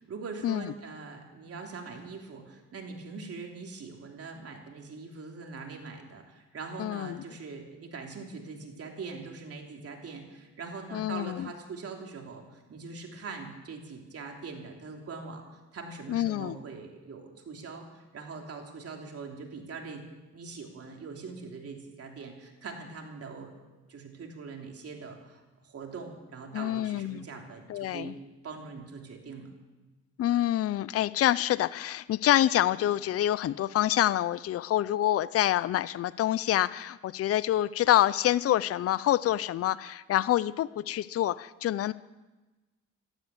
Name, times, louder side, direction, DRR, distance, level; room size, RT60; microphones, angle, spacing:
voice 1, 0.0-20.0 20.3-23.5 23.9-28.2 28.4-29.5, right 4 dB, 50° right, 1 dB, 3.3 m, -42 dB
voice 2, 6.8-7.2 10.9-11.5 16.1-16.6 26.5-27.3 27.7-28.1 30.2-41.9, left 13 dB, 50° left, 18 dB, 0.5 m, -27 dB
12.5 x 11.5 x 8.5 m, 1.2 s
cardioid pair, 90°, 30 cm